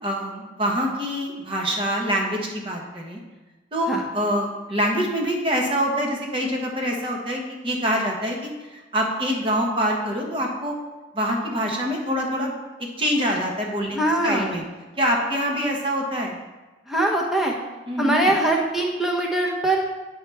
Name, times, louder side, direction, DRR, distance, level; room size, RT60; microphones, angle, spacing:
voice 1, 0.0-3.2 3.7-10.7 11.1-12.5 13.0-14.0 14.2-14.6 15.0-16.4 17.9-18.3, equal, 30° right, 0 dB, 1.1 m, -25 dB
voice 2, 13.9-14.6 16.9-17.6 18.0-19.9, right 1 dB, ahead, -2 dB, 0.9 m, -22 dB
9.7 x 4.8 x 3.4 m, 1.2 s
head